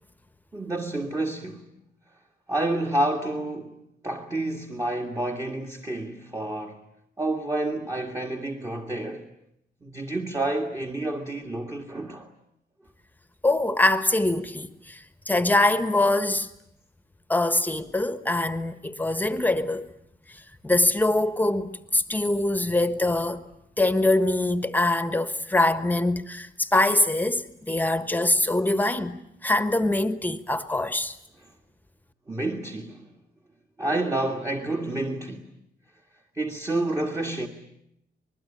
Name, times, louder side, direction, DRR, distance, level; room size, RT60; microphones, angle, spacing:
voice 1, 0.5-1.7 2.5-3.8 4.0-6.8 7.2-9.3 9.8-12.3 32.3-33.0 33.8-35.5 36.4-37.5, right 2 dB, 15° right, 1.8 m, -29 dB
voice 2, 13.4-16.5 17.3-19.9 20.3-23.4 23.8-31.2, left 2 dB, 10° left, 1.3 m, -24 dB
26.0 x 21.0 x 10.0 m
wide cardioid pair, 145°, 19 cm